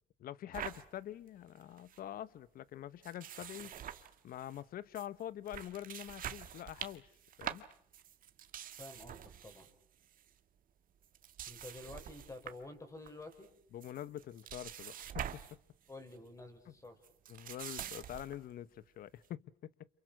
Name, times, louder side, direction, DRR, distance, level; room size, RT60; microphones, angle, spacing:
voice 1, 0.2-3.7 4.2-7.1 7.4-7.7 13.7-15.4 16.7-16.8 17.3-19.7, left 12 dB, 60° left, 1.1 m, -45 dB
Turning Pages, 0.5-0.8 1.3-1.4 1.6-2.0 3.0-4.6 4.9-5.1 5.5-9.7 10.0-10.3 11.0-12.7 13.1-13.5 13.8-15.6 15.9-16.1 17.0-18.4, right 10 dB, 55° right, 1.9 m, -46 dB
voice 2, 8.8-9.7 11.5-13.5 15.9-17.0, left 2 dB, 20° left, 6.2 m, -50 dB
29.0 x 28.0 x 6.1 m
cardioid pair, 110°, 17 cm